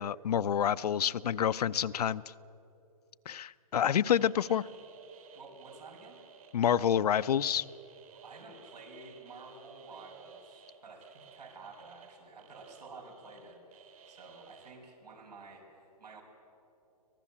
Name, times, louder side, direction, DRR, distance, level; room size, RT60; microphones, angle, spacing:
voice 1, 0.0-2.2 3.3-4.7 6.5-7.6, left 9 dB, 75° left, 14 dB, 0.6 m, -28 dB
sound 1, 4.1-14.7, right 7 dB, 60° right, 3.6 m, -56 dB
voice 2, 5.3-6.2 8.1-16.2, right 3 dB, 90° right, 2 dB, 5.8 m, -51 dB
25.5 x 18.5 x 7.4 m, 2.8 s
hypercardioid pair, 150°, 20 cm